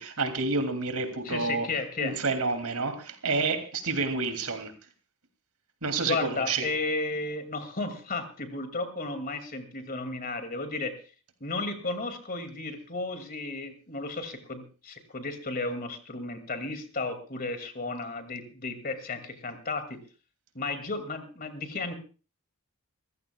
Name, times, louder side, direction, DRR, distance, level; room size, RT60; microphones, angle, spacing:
voice 1, 0.0-1.7 2.0-4.7 5.8-6.7, right 3 dB, 80° right, 8 dB, 2.8 m, -29 dB
voice 2, 1.2-2.2 6.0-11.0 11.4-20.0 20.5-21.9, left 3 dB, 40° left, 8 dB, 2.4 m, -33 dB
27.0 x 15.0 x 2.3 m, 0.36 s
head